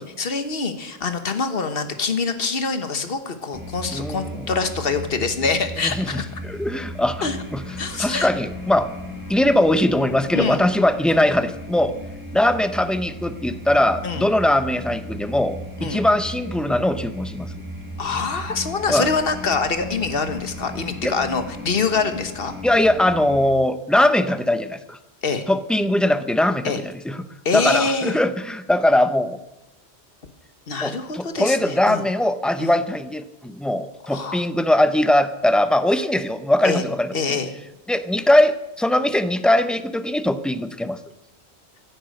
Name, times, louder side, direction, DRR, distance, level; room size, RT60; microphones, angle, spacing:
voice 1, 0.0-6.3 7.2-7.4 7.8-8.3 10.3-10.6 14.0-14.3 15.8-16.0 18.0-22.5 25.2-25.5 26.6-26.8 27.4-28.2 30.7-32.0 32.6-32.7 34.1-34.4 36.6-36.8 37.1-37.5, left 4 dB, 55° left, 8 dB, 1.5 m, -25 dB
sound 1, 3.5-23.5, left 1 dB, 20° right, 1.3 m, -36 dB
voice 2, 3.9-4.5 6.0-7.3 7.5-7.6 8.0-8.9 9.3-11.9 12.3-17.5 18.9-19.1 21.0-21.1 22.6-25.0 25.5-27.3 27.5-29.4 30.8-37.4 37.9-41.0, left 1 dB, ahead, 11 dB, 0.4 m, -21 dB
16.0 x 10.0 x 6.6 m, 0.94 s
omnidirectional pair, 1.2 m